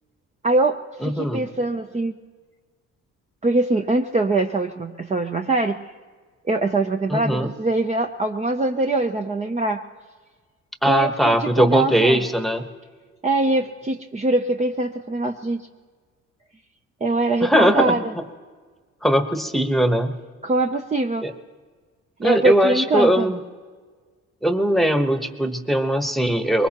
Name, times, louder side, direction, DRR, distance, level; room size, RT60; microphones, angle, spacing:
voice 1, 0.4-2.1 3.4-5.8 6.5-9.8 10.9-12.2 13.2-15.6 17.0-18.1 20.4-21.3 22.2-23.3, right 2 dB, 25° right, 4 dB, 0.7 m, -23 dB
voice 2, 1.0-1.4 7.1-7.5 10.8-12.6 17.4-18.0 19.0-20.1 21.2-21.3 22.2-23.4 24.4-26.7, equal, ahead, 7 dB, 1.2 m, -20 dB
23.0 x 20.5 x 3.0 m, 1.5 s
cardioid pair, 90°, 30 cm